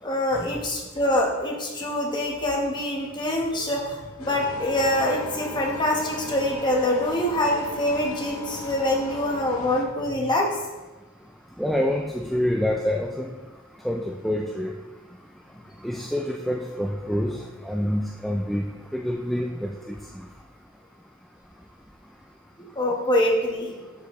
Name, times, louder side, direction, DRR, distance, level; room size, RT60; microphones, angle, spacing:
voice 1, 0.0-10.5 22.7-23.7, left 1 dB, 20° left, -1 dB, 1.1 m, -25 dB
sound 1, 4.2-9.8, left 1 dB, 90° left, 0.8 m, -37 dB
voice 2, 11.6-13.3 13.8-14.7 15.8-18.6 18.9-20.2, left 1 dB, ahead, 0 dB, 0.3 m, -27 dB
12.0 x 4.8 x 3.1 m, 1.2 s
head